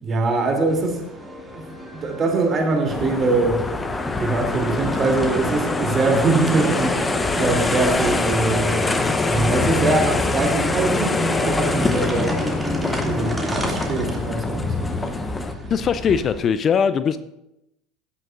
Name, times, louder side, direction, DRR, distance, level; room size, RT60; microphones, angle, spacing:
voice 1, 0.0-1.0 1.5-3.6 4.2-6.9 7.4-8.8 9.3-13.3 13.7-15.1, right 3 dB, 35° right, 1 dB, 2.9 m, -23 dB
sound 1, 0.7-16.4, right 1 dB, 10° right, 2.6 m, -34 dB
sound 2, 2.9-15.5, left 3 dB, 20° left, 0.9 m, -24 dB
voice 2, 15.7-17.2, left 7 dB, 40° left, 13 dB, 0.5 m, -21 dB
15.5 x 9.9 x 2.6 m, 0.87 s
hypercardioid pair, 75°, 0 cm